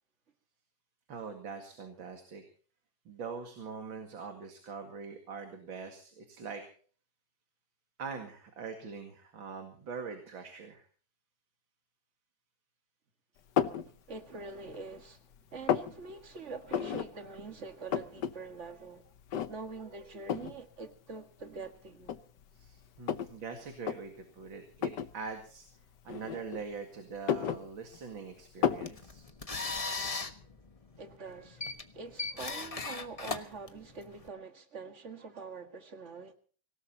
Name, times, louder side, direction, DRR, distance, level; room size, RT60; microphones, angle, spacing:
voice 1, 1.1-2.4 3.1-6.6 8.0-10.8 22.5-25.7 26.0-29.2, right 5 dB, 75° right, 2.9 m, -43 dB
sound 1, 13.6-13.9 14.4-15.1 15.3-15.9 16.7-17.1 17.4-17.5 17.7-18.3 18.7-18.8 19.3-19.8 20.3-20.6 21.4-21.5 22.0-23.4 23.8-24.0 24.8-25.1 26.1-26.8 27.1-28.1 28.6-28.9, left 8 dB, 65° left, 1.5 m, -32 dB
voice 2, 14.1-15.2 15.5-19.0 19.5-22.2 31.0-36.3, right 4 dB, 35° right, 2.1 m, -45 dB
sound 2, 28.6-34.3, left 4 dB, 25° left, 0.9 m, -39 dB
25.5 x 17.5 x 2.9 m
omnidirectional pair, 2.2 m